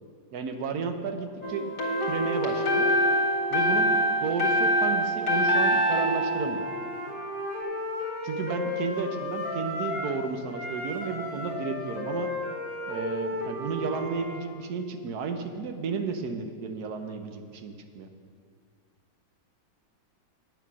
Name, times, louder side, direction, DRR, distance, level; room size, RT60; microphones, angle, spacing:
voice 1, 0.3-1.7 2.0-2.9 3.5-6.7 8.2-12.3 12.9-18.1, right 5 dB, 65° right, 7 dB, 1.3 m, -33 dB
sound 1, 1.4-7.4, equal, 60° left, 2.2 m, -25 dB
Wind instrument woodwind instrument, 6.5-10.2 10.5-14.4, left 2 dB, 25° right, 3.7 m, -34 dB
9.3 x 9.0 x 6.1 m, 2.1 s
omnidirectional pair, 2.0 m